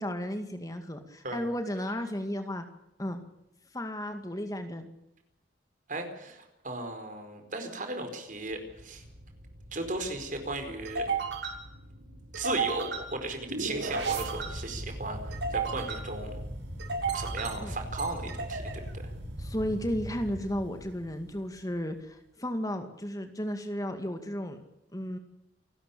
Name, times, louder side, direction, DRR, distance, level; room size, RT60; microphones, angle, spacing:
voice 1, 0.0-2.6 3.0-3.2 3.7-4.9 17.6-17.8 19.4-24.6 24.9-25.2, equal, 20° left, 7 dB, 2.2 m, -34 dB
voice 2, 5.9-9.0 9.7-11.1 12.3-16.4 17.1-19.1, right 2 dB, 45° right, 6 dB, 4.7 m, -36 dB
sound 1, 8.5-21.3, right 3 dB, 85° right, 6.4 m, -35 dB
28.5 x 13.0 x 8.6 m, 0.85 s
head